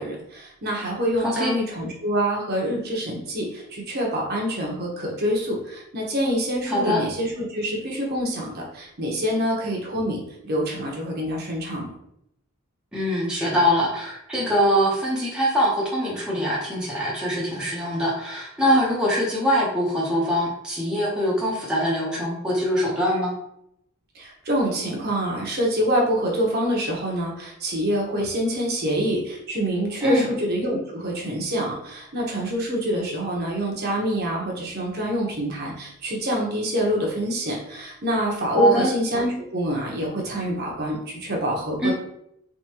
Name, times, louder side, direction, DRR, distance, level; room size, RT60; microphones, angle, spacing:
voice 1, 0.0-11.9 24.1-41.9, equal, 50° right, -2 dB, 1.0 m, -26 dB
voice 2, 1.2-1.5 6.7-7.0 12.9-23.3 30.0-30.3 38.6-38.9 41.8-41.9, equal, 5° right, -6 dB, 0.9 m, -23 dB
3.6 x 3.6 x 2.9 m, 0.76 s
head